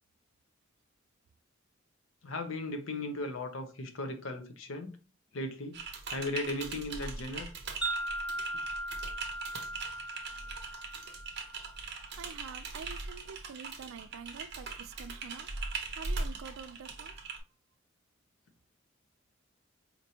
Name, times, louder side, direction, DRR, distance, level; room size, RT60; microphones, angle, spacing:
voice 1, 2.2-5.0 5.3-5.8 6.1-7.5, left 2 dB, 70° left, 0.7 m, -37 dB
Typing, 5.7-17.4, right 4 dB, 55° right, 0.7 m, -40 dB
Wind chime, 7.8-12.1, right 1 dB, 5° right, 0.3 m, -38 dB
voice 2, 12.2-15.5 15.9-17.1, right 6 dB, 90° right, 0.4 m, -47 dB
4.3 x 2.6 x 2.7 m
head